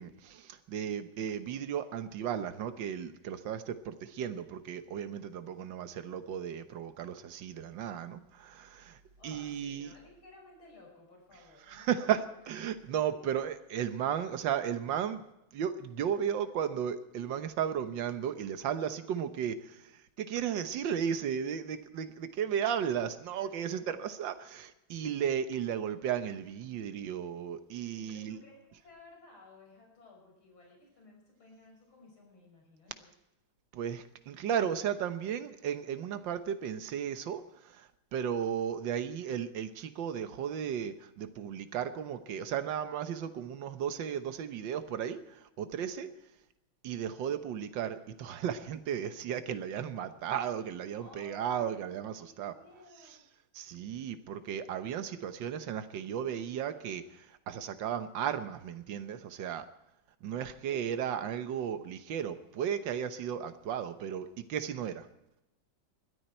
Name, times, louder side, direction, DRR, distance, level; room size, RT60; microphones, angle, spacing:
voice 1, 0.0-9.9 11.7-15.2 15.5-28.4 33.7-46.1 46.8-52.5 53.5-59.7 60.2-65.1, right 8 dB, 70° right, 10 dB, 1.7 m, -35 dB
voice 2, 9.2-12.1 12.4-12.5 12.8-13.3 23.3-23.9 28.1-33.1 51.0-51.9 52.2-53.2 60.2-60.6, left 2 dB, 85° left, 0 dB, 6.6 m, -56 dB
21.0 x 13.5 x 4.4 m, 0.91 s
omnidirectional pair, 2.2 m